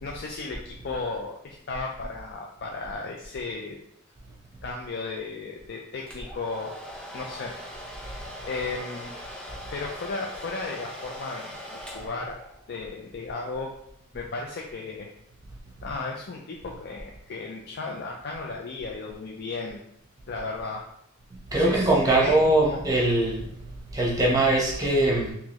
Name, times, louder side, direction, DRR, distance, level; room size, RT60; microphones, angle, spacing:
voice 1, 0.0-3.8 4.6-6.7 7.1-7.6 8.0-8.2 8.4-13.7 14.1-15.1 15.8-19.8 20.3-20.8 21.6-22.8, left 3 dB, 50° left, -1 dB, 0.4 m, -35 dB
Domestic sounds home sounds, 6.1-12.7, equal, 5° left, 0.6 m, -41 dB
voice 2, 21.5-23.4 23.9-25.3, right 2 dB, 20° right, -4 dB, 0.9 m, -21 dB
3.7 x 2.9 x 3.0 m, 0.76 s
head